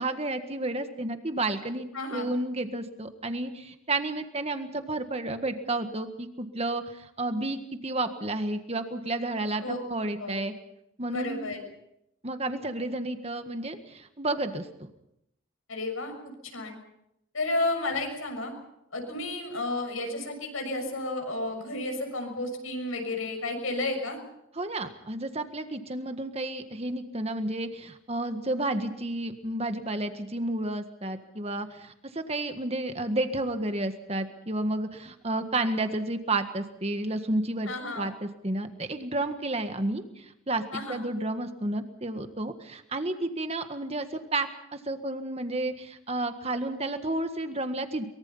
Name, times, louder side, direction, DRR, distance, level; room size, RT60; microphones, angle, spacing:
voice 1, 0.0-10.5 11.0-11.5 12.2-14.9 24.6-48.0, right 2 dB, 30° right, 8 dB, 1.7 m, -31 dB
voice 2, 1.9-2.3 9.6-9.8 10.2-10.4 11.1-11.6 15.7-16.8 17.3-18.5 18.9-24.2 37.7-38.1 40.7-41.0, left 2 dB, 80° left, 4 dB, 6.6 m, -32 dB
23.5 x 23.0 x 5.6 m, 0.81 s
head